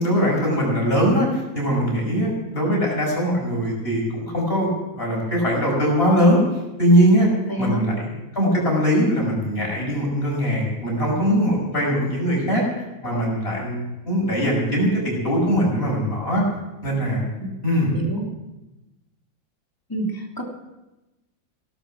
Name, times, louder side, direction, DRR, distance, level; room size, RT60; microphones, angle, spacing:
voice 1, 0.0-6.4 6.8-7.3 7.6-12.6 13.0-16.4 16.8-17.2 17.6-17.9, equal, 30° left, -3 dB, 6.4 m, -21 dB
voice 2, 7.5-7.9 17.4-17.6 17.9-18.3 19.9-20.4, equal, 10° left, -1 dB, 2.7 m, -28 dB
17.5 x 12.5 x 6.4 m, 1.0 s
omnidirectional pair, 2.0 m